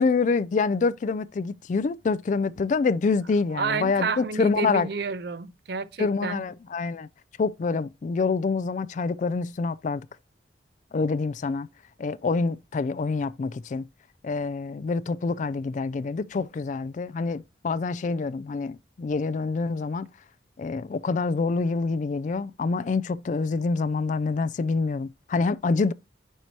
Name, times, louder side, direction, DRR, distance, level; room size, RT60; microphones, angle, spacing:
voice 1, 0.0-4.9 6.0-7.1 7.4-10.1 10.9-11.7 12.0-13.9 14.2-20.1 20.6-25.9, left 4 dB, 45° left, 0.3 m, -26 dB
voice 2, 3.5-6.4, right 4 dB, 60° right, 0.5 m, -30 dB
9.2 x 4.6 x 2.8 m
head